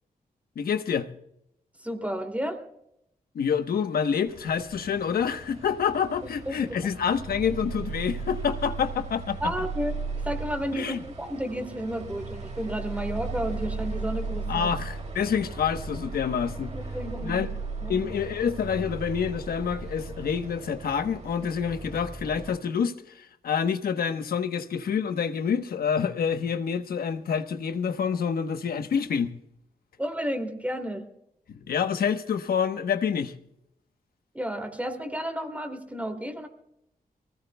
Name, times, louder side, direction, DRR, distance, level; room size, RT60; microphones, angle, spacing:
voice 1, 0.6-1.1 3.3-9.7 10.7-11.0 14.5-16.7 17.2-17.5 17.9-29.3 31.5-33.3, left 7 dB, 85° left, 1.1 m, -27 dB
voice 2, 1.8-2.6 6.5-6.6 9.4-10.0 10.2-14.7 16.7-17.5 17.8-18.1 30.0-31.0 34.3-36.5, equal, 10° right, 2.6 m, -32 dB
sound 1, 4.3-22.6, right 4 dB, 50° right, 2.8 m, -36 dB
24.0 x 17.5 x 2.3 m
wide cardioid pair, 110°, 15 cm